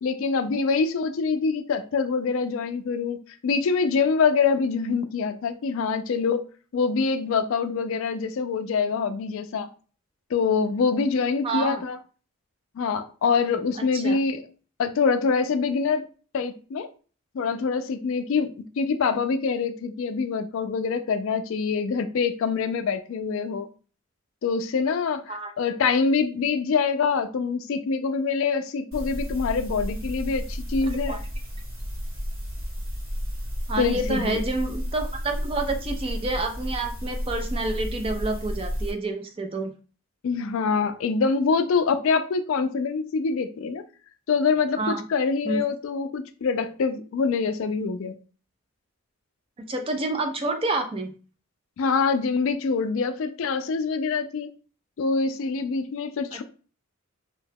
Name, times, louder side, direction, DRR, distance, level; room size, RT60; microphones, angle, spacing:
voice 1, 0.0-6.4 6.7-9.7 10.3-12.0 12.8-14.4 14.8-16.0 16.3-16.9 17.3-23.7 24.4-31.2 33.8-34.4 40.2-43.9 44.3-48.2 51.8-54.5 55.0-56.4, left 5 dB, 65° left, 0.3 m, -25 dB
voice 2, 11.4-11.8 13.9-14.2 25.3-25.5 30.9-31.2 33.7-39.7 44.8-45.0 45.5-45.6 49.7-51.1 56.3-56.4, right 2 dB, 25° right, 0.3 m, -28 dB
sound 1, 28.9-38.9, equal, 65° right, 1.7 m, -32 dB
2.7 x 2.2 x 3.4 m
head